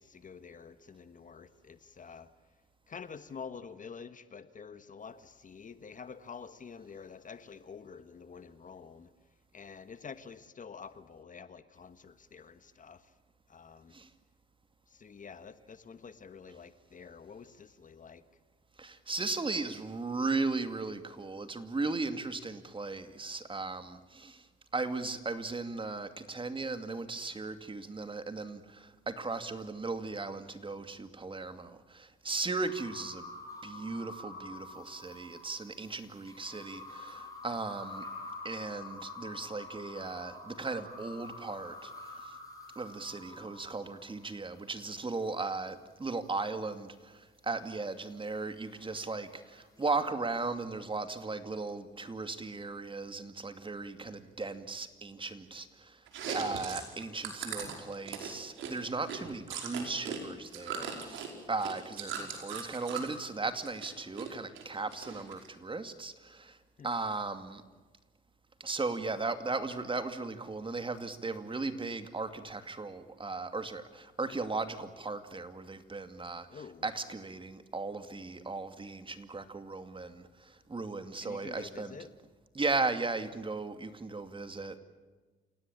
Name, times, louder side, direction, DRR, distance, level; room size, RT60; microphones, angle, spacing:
voice 1, 0.0-2.3 2.9-9.1 9.5-13.1 13.5-13.9 14.9-18.2 66.8-66.9 76.5-76.9 81.2-82.1, left 6 dB, 40° left, 12 dB, 1.4 m, -48 dB
voice 2, 18.8-24.5 24.7-33.3 33.6-38.0 38.4-42.3 42.8-56.0 56.3-66.6 66.8-67.6 68.6-82.1 82.5-84.8, right 3 dB, 25° right, 9 dB, 2.4 m, -37 dB
sound 1, 32.6-44.4 47.7-50.0, left 2 dB, 15° left, 7.9 m, -47 dB
Chewing mastication, 56.1-60.2 60.5-63.1 63.5-64.3 64.6-65.5, right 7 dB, 80° right, 5.2 m, -39 dB
29.0 x 17.5 x 8.9 m, 1.3 s
cardioid pair, 90°, 20 cm